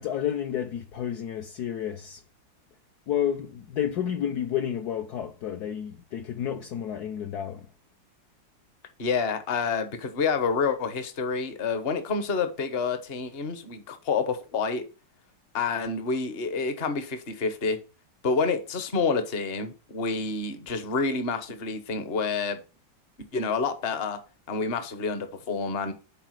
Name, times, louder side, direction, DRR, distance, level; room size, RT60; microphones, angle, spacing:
voice 1, 0.0-2.2 3.1-7.7, left 9 dB, 65° left, 1.2 m, -30 dB
voice 2, 9.0-14.8 15.5-17.8 18.2-22.6 23.3-24.2 24.5-25.9, left 4 dB, 40° left, 1.1 m, -28 dB
7.4 x 4.5 x 6.5 m
omnidirectional pair, 2.0 m